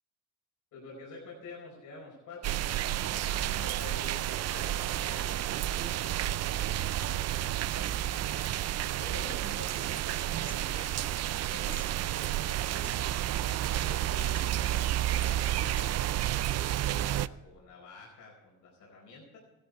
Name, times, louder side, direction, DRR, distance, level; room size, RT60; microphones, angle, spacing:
voice 1, 0.7-2.7 3.1-7.9 8.8-12.9 13.7-19.4, left 3 dB, 80° left, -3 dB, 5.0 m, -49 dB
sound 1, 2.4-17.3, right 13 dB, 55° right, 0.5 m, -31 dB
sound 2, 9.9-10.6 11.2-11.3 11.6-11.9 12.4-13.5 13.7-14.7 15.2-15.8, left 2 dB, 30° left, 1.8 m, -50 dB
15.5 x 12.5 x 4.7 m, 1.1 s
cardioid pair, 90°, 30 cm